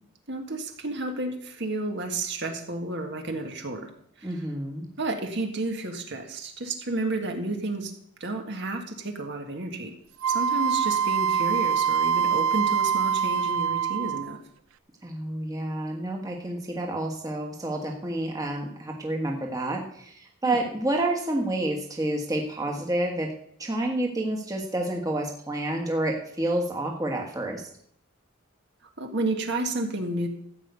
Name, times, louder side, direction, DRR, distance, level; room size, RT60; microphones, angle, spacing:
voice 1, 0.3-3.9 4.2-4.4 5.0-7.9 8.2-10.0 10.3-14.4 20.4-20.6 29.0-30.3, right 2 dB, 55° right, 4 dB, 1.8 m, -31 dB
voice 2, 4.2-4.9 15.0-23.3 23.6-27.6, right 1 dB, 15° right, 1 dB, 1.5 m, -29 dB
Wind instrument woodwind instrument, 10.2-14.4, right 7 dB, 70° right, 0.4 m, -24 dB
14.0 x 5.5 x 8.2 m, 0.67 s
head